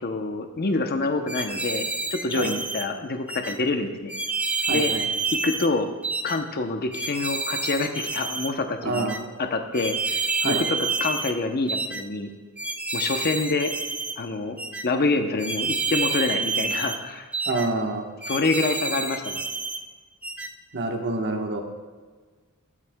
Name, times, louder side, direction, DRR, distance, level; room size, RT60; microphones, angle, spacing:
voice 1, 0.0-4.1 4.7-4.9 5.4-5.9 6.2-9.1 9.4-12.3 12.9-13.7 14.2-14.6 14.8-17.2 18.3-19.4, left 3 dB, 45° left, 6 dB, 0.7 m, -26 dB
sound 1, 1.3-2.9 3.3-3.6 4.1-5.7 6.0-6.4 6.9-8.5 8.9-9.2 9.7-11.4 11.7-12.0 12.6-14.2 14.6-14.9 15.4-17.0 17.3-17.7 18.2-19.8 20.2-20.5, right 4 dB, 5° right, 0.3 m, -29 dB
voice 2, 4.7-5.0 8.8-9.2 10.4-10.6 17.5-18.1 20.7-21.6, right 2 dB, 50° right, 2 dB, 1.2 m, -27 dB
15.0 x 8.0 x 2.2 m, 1.4 s
head